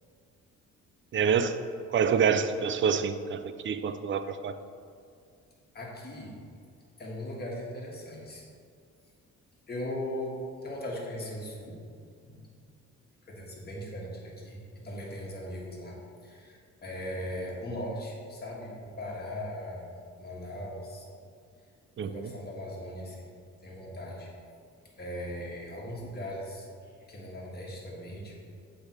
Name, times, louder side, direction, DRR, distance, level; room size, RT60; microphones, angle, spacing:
voice 1, 1.1-1.6 1.9-4.5 22.0-22.3, right 6 dB, 40° right, 11 dB, 0.4 m, -27 dB
voice 2, 5.7-6.3 7.0-8.4 9.7-10.3 10.6-11.8 12.2-12.5 13.3-16.0 16.2-21.0 22.1-23.2 23.6-24.3 25.0-28.5, left 1 dB, 30° left, -3 dB, 1.7 m, -39 dB
7.9 x 3.5 x 4.5 m, 2.2 s
cardioid pair, 90°, 30 cm